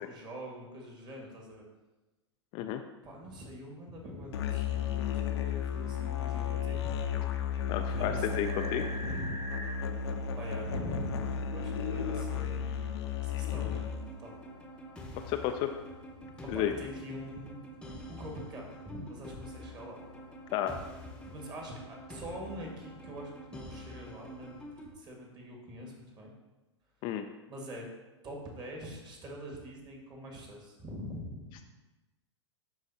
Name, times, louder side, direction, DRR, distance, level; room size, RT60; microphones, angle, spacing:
voice 1, 0.0-1.6 3.0-6.8 7.9-8.3 8.6-9.4 10.3-12.9 13.2-13.8 14.2-14.3 16.4-17.6 18.1-20.0 21.2-24.6 24.9-26.3 27.5-27.8 28.2-31.6, equal, 30° right, 0 dB, 1.7 m, -44 dB
Musical instrument, 4.3-14.1, left 7 dB, 60° left, 0.7 m, -33 dB
voice 2, 7.7-8.8 15.3-15.7 16.5-16.7 20.5-20.8 27.0-27.3, left 11 dB, 35° left, 6 dB, 0.4 m, -32 dB
sound 1, 8.4-9.8 10.7-10.8, equal, 85° right, 1.3 m, -41 dB
sound 2, 13.5-24.9, equal, 5° left, 0.9 m, -47 dB
11.5 x 4.0 x 2.7 m, 1.1 s
figure-of-eight pair, 100°, 15 cm